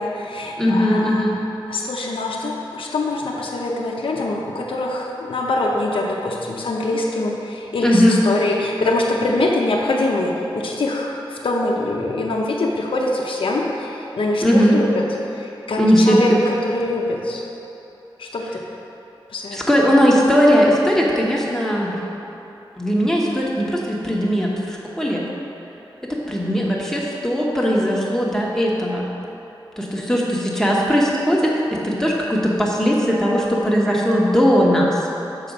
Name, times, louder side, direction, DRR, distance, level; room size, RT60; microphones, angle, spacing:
voice 1, 0.0-1.2 1.7-15.0 15.3-17.5 18.2-18.6 19.3-19.6, left 2 dB, 80° left, -2 dB, 0.7 m, -24 dB
voice 2, 0.6-1.4 7.8-8.2 14.4-14.8 15.8-16.4 19.5-22.0 22.8-25.3 26.0-29.1 29.8-35.0, equal, 5° left, -4 dB, 1.1 m, -18 dB
6.7 x 4.9 x 5.3 m, 3.0 s
wide cardioid pair, 90°, 9 cm